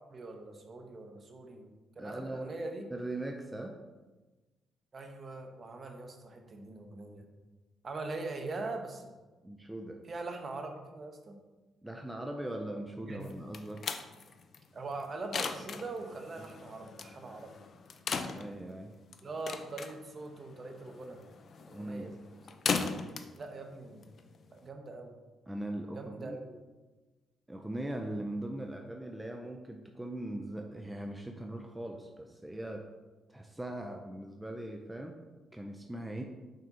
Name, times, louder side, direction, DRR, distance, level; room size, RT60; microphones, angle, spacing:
voice 1, 0.1-1.7 2.0-2.8 4.9-7.3 7.8-9.1 10.0-11.4 13.1-13.4 14.7-17.5 19.2-21.2 21.6-22.2 23.4-24.1 24.5-25.1 25.9-26.6, right 3 dB, 40° right, 4 dB, 1.0 m, -42 dB
voice 2, 2.0-2.6 2.9-3.8 9.4-10.0 11.8-13.8 16.4-16.5 18.3-18.9 21.7-22.1 25.5-26.4 27.5-32.9 33.3-35.2 35.5-36.2, right 1 dB, 5° right, 3 dB, 0.6 m, -40 dB
sound 1, 13.2-24.7, left 5 dB, 50° left, 0.5 m, -39 dB
5.5 x 5.4 x 4.0 m, 1.2 s
cardioid pair, 90°, 0 cm